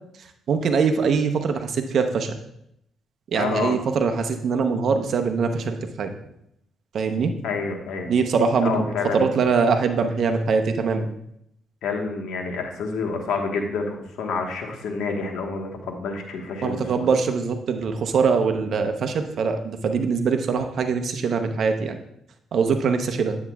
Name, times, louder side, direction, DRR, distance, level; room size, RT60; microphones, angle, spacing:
voice 1, 0.5-2.3 3.3-6.1 6.9-7.3 8.0-8.8 9.1-11.1 16.6-22.0 22.5-23.4, right 5 dB, 60° right, 6 dB, 0.8 m, -22 dB
voice 2, 3.3-3.8 7.4-8.1 8.6-9.3 11.8-17.1, left 4 dB, 80° left, 2 dB, 1.3 m, -28 dB
9.5 x 8.1 x 2.4 m, 0.76 s
cardioid pair, 90°, 0 cm